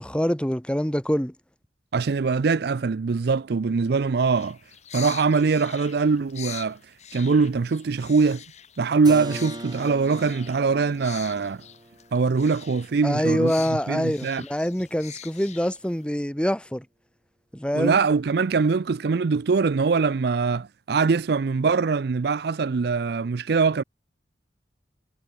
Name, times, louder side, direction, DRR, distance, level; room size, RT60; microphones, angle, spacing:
voice 1, 0.0-1.3 13.0-16.8 17.5-18.0, equal, 5° left, 1.1 m, -25 dB
voice 2, 1.9-4.6 4.9-6.8 7.1-8.4 8.8-11.6 12.1-14.4 17.7-23.8, right 4 dB, 60° right, 0.5 m, -23 dB
sound 1, 4.4-16.0, left 10 dB, 40° left, 1.3 m, -44 dB
Keyboard (musical), 9.0-14.6, right 1 dB, 25° right, 3.4 m, -42 dB
head